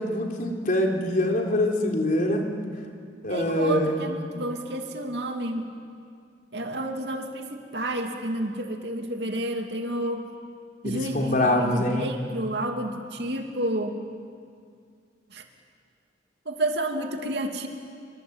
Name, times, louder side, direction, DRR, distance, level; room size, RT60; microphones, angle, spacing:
voice 1, 0.0-2.4 3.2-4.0 10.8-12.1, left 1 dB, 50° left, 1 dB, 3.8 m, -24 dB
voice 2, 3.3-5.7 6.5-10.3 10.8-14.0 15.3-15.4 16.4-17.7, right 1 dB, 65° right, 4 dB, 2.7 m, -30 dB
27.0 x 24.5 x 8.9 m, 2.2 s
head